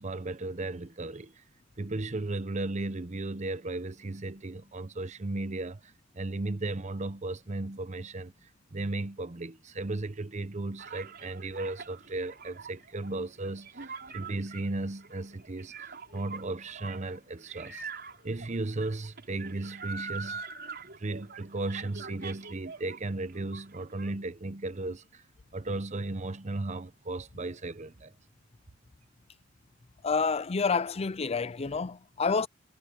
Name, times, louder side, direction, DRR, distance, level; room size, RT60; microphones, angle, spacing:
voice 1, 0.0-1.4 1.8-15.7 16.1-17.8 18.2-20.4 21.0-25.2 25.5-28.1, right 2 dB, 35° right, 0.8 m, -35 dB
sound 1, 10.8-23.0 23.3-24.1, right 5 dB, 55° right, 5.3 m, -44 dB
voice 2, 30.0-32.5, left 5 dB, 30° left, 0.5 m, -28 dB
head